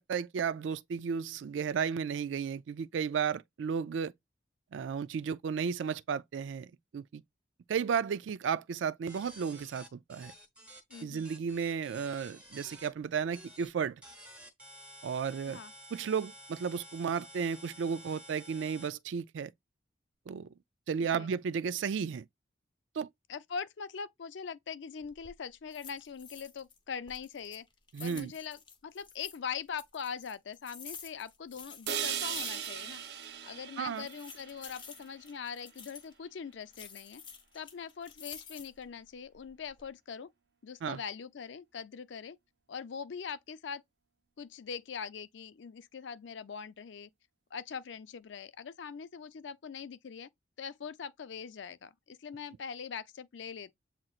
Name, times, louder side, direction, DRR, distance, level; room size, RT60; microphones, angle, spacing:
voice 1, 0.0-4.1 4.7-7.2 7.7-10.3 11.0-14.0 15.0-15.6 15.9-19.5 20.3-20.5 20.9-22.2 22.9-23.1 27.9-28.3 33.8-34.1 40.8-41.0, right 6 dB, 80° right, 0.3 m, -33 dB
sound 1, 9.1-12.9 13.3-13.7 14.0-18.9, right 1 dB, 5° right, 1.0 m, -51 dB
voice 2, 10.9-11.3 15.5-15.7 21.0-21.3 23.3-27.7 28.0-33.0 33.4-37.2 37.5-40.3 40.6-42.4 42.7-43.8 44.4-47.1 47.5-50.3 50.6-53.7, left 6 dB, 75° left, 0.5 m, -42 dB
sound 2, 25.0-25.3 25.7-26.8 27.1-29.4 29.8-33.0 33.2-33.3 33.9-36.1 36.7-38.8 39.3-39.9, left 6 dB, 25° left, 0.7 m, -50 dB
sound 3, 31.9-35.9, right 9 dB, 60° right, 0.7 m, -39 dB
7.6 x 2.9 x 2.4 m
head